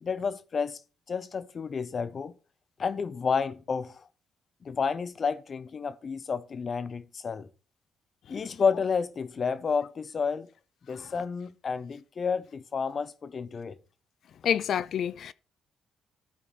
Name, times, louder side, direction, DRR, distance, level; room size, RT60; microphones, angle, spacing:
voice 1, 0.0-0.8 1.1-2.3 2.8-3.9 4.6-7.5 8.3-10.5 10.9-13.8, left 5 dB, 45° left, 0.8 m, -30 dB
voice 2, 14.4-15.3, left 9 dB, 65° left, 0.4 m, -27 dB
13.0 x 4.5 x 4.1 m
cardioid pair, 90°, 0 cm